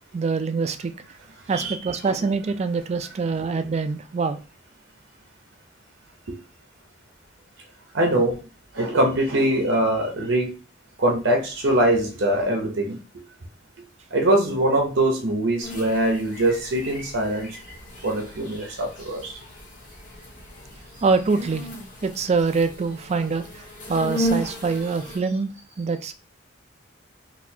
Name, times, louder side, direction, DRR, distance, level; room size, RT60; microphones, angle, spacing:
voice 1, 0.1-0.9 1.5-4.4 21.0-21.7 22.0-23.6 23.9-25.5 25.8-26.1, right 4 dB, 35° right, 0.3 m, -24 dB
voice 2, 1.5-2.2 6.3-6.4 7.9-8.4 8.7-10.6 11.0-13.0 14.1-17.6 18.0-19.4, right 1 dB, 85° right, 0.7 m, -23 dB
sound 1, 15.6-25.2, equal, 45° left, 1.2 m, -35 dB
4.0 x 2.4 x 2.7 m
head